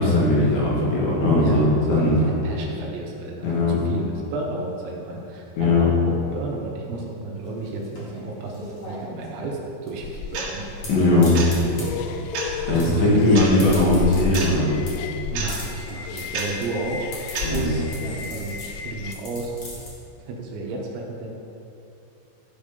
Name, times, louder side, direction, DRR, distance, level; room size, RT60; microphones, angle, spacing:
voice 1, 0.0-2.2 3.4-3.8 5.6-5.9 10.9-11.3 12.7-14.7 17.4-17.6, left 2 dB, 65° left, -6 dB, 4.1 m, -19 dB
voice 2, 1.4-10.7 11.0-11.7 12.7-14.0 15.3-18.6 18.8-19.5 20.2-21.3, right 3 dB, 75° right, -1 dB, 3.2 m, -32 dB
sound 1, 7.4-19.9, left 1 dB, 45° left, 2.1 m, -39 dB
sound 2, 10.0-19.1, left 4 dB, 90° left, 3.2 m, -32 dB
sound 3, 10.3-10.5 11.3-11.5 12.3-12.5 13.4-13.5 14.3-14.5 15.4-15.5 16.3-16.5 17.4-17.5, right 5 dB, 60° right, 3.1 m, -29 dB
13.0 x 5.3 x 5.1 m, 2.7 s
omnidirectional pair, 5.8 m